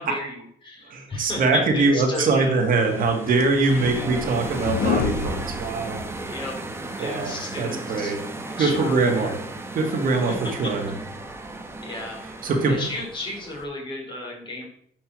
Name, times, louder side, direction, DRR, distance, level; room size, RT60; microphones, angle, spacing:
voice 1, 0.0-2.6 3.6-4.1 6.3-6.6 7.0-8.1 8.6-9.3 10.6-10.9 11.8-14.7, left 2 dB, 30° left, -1 dB, 3.8 m, -34 dB
voice 2, 0.9-6.0 7.0-8.2 8.6-9.3 9.7-10.9 12.4-12.8, right 3 dB, 55° right, 2 dB, 2.0 m, -23 dB
sound 1, 2.3-13.6, right 2 dB, 15° right, 1.3 m, -35 dB
sound 2, 2.8-6.5, left 6 dB, 65° left, 1.1 m, -29 dB
8.0 x 5.3 x 6.1 m, 0.65 s
cardioid pair, 110°, 17 cm